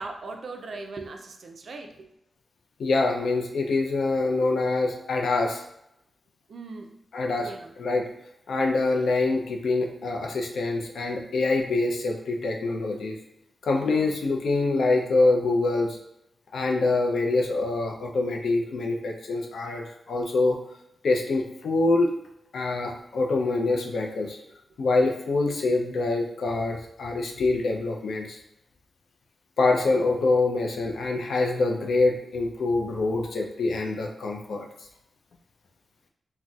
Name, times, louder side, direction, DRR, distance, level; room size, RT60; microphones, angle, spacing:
voice 1, 0.0-2.1 6.5-6.9 7.4-7.7 13.8-14.2, right 3 dB, 60° right, 4 dB, 0.3 m, -39 dB
voice 2, 2.8-5.6 7.1-7.5 7.8-8.1 8.5-13.1 13.6-16.0 16.5-20.6 21.0-22.1 22.5-24.4 24.8-28.4 29.6-34.7, left 3 dB, 75° left, 2 dB, 0.4 m, -25 dB
4.0 x 2.1 x 2.3 m, 0.79 s
wide cardioid pair, 150°, 0 cm